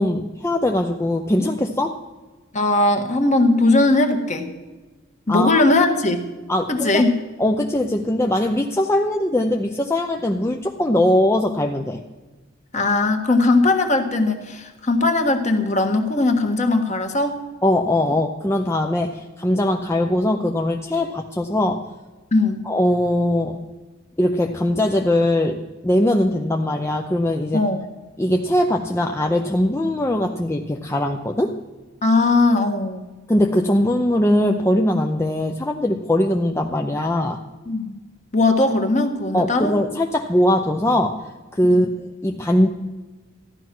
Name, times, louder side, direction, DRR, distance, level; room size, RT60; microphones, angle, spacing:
voice 1, 0.0-2.0 5.3-5.6 6.5-7.0 7.4-12.0 17.6-21.8 22.7-23.6 24.2-27.6 28.2-31.6 33.3-37.4 39.3-41.2 41.5-42.7, left 1 dB, 15° left, 2 dB, 0.6 m, -21 dB
voice 2, 2.5-4.5 5.3-6.2 6.7-7.1 12.7-17.4 22.3-22.6 27.5-27.9 32.0-33.1 37.7-38.0 38.3-39.7 41.7-41.9, left 2 dB, 35° left, 5 dB, 1.5 m, -19 dB
14.5 x 10.5 x 6.1 m, 1.2 s
head